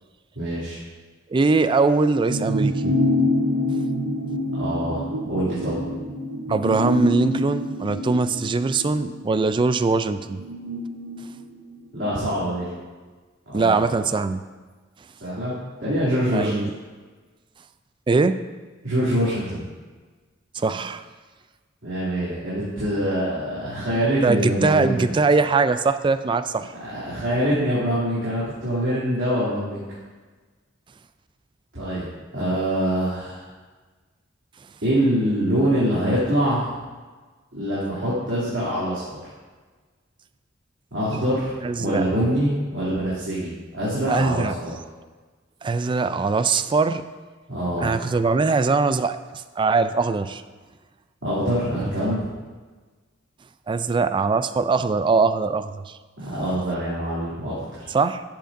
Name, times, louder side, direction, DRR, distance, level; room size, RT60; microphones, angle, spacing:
voice 1, 0.3-0.8 4.5-5.0 5.3-5.8 11.9-12.7 13.5-13.9 15.2-16.5 18.8-19.6 21.8-25.1 26.8-29.8 31.7-32.1 32.3-33.4 34.8-36.7 37.5-39.2 40.9-41.5 41.8-44.7 47.5-47.9 51.2-52.3 56.2-57.9, equal, 70° right, -11 dB, 2.8 m, -24 dB
voice 2, 1.3-2.9 6.5-10.4 13.5-14.4 16.3-16.7 18.1-18.4 20.5-21.1 24.2-26.7 32.4-32.6 41.6-42.0 44.1-44.6 45.6-47.0 47.8-50.4 53.7-56.0 57.9-58.2, right 4 dB, 25° right, 12 dB, 0.3 m, -21 dB
sound 1, 2.3-12.1 12.5-12.6, left 1 dB, 85° right, 0.9 m, -26 dB
11.5 x 7.7 x 2.6 m, 1.4 s
head